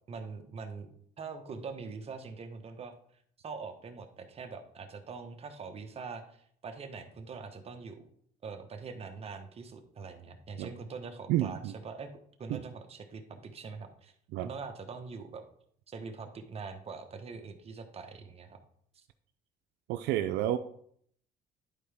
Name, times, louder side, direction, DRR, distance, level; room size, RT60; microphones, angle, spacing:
voice 1, 0.1-0.9 1.2-2.9 3.4-6.2 6.6-8.0 8.4-12.1 12.4-14.1 14.4-15.4 15.9-18.6 18.9-19.0, right 4 dB, 35° right, 5 dB, 1.1 m, -43 dB
voice 2, 11.3-11.7 12.5-12.6 14.3-14.5 19.9-20.6, right 13 dB, 85° right, 9 dB, 0.5 m, -30 dB
11.0 x 4.6 x 3.5 m, 0.64 s
cardioid pair, 110°, 17 cm